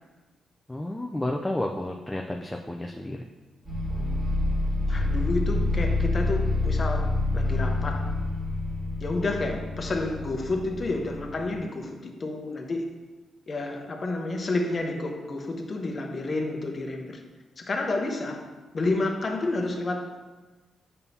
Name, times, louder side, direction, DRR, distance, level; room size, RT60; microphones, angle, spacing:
voice 1, 0.7-3.2, left 1 dB, 10° left, 0.4 m, -31 dB
sound 1, 3.6-11.6, left 2 dB, 20° right, 1.6 m, -27 dB
voice 2, 4.9-8.2 9.0-12.9 13.5-17.2 17.6-18.4 18.7-20.3, left 2 dB, 35° left, 0.9 m, -30 dB
8.9 x 5.5 x 2.8 m
cardioid pair, 120°, 0 cm